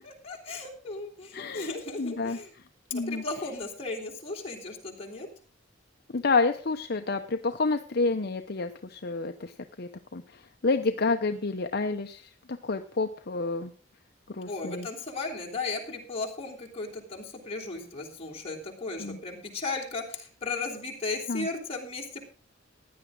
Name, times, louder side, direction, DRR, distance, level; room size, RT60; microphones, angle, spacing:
voice 1, 0.0-2.5 2.9-5.3 14.5-22.2, left 3 dB, 35° left, 0 dB, 3.5 m, -36 dB
voice 2, 1.3-1.7 2.0-2.4 2.9-3.2 6.1-9.5 9.8-12.3 12.6-13.7 14.3-14.9 19.0-19.2 21.3-21.5, left 3 dB, 55° left, 6 dB, 0.8 m, -29 dB
16.0 x 10.5 x 3.8 m, 0.40 s
head